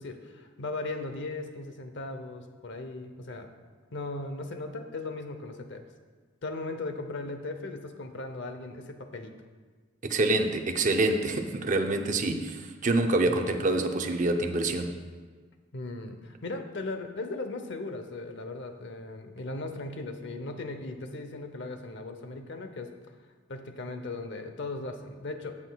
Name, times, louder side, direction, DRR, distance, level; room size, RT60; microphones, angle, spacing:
voice 1, 0.0-3.5 3.9-5.8 6.4-9.3 15.7-22.9 23.5-25.6, left 2 dB, 65° left, 7 dB, 0.8 m, -37 dB
voice 2, 10.0-15.0, right 2 dB, 40° right, 5 dB, 0.6 m, -26 dB
16.5 x 6.0 x 2.3 m, 1.5 s
head